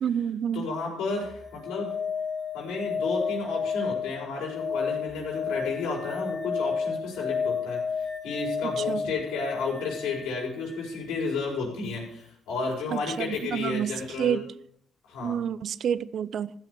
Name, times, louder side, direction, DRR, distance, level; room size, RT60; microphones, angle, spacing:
voice 1, 0.0-0.7 8.6-9.1 12.9-14.5 15.2-16.5, right 8 dB, 65° right, 0.6 m, -29 dB
voice 2, 0.5-1.9 2.5-14.4 15.0-15.4, left 4 dB, 85° left, 5.4 m, -32 dB
sound 1, 1.2-11.0 13.3-13.4, left 6 dB, 30° left, 3.0 m, -32 dB
15.0 x 6.2 x 8.4 m
cardioid pair, 90°, 0 cm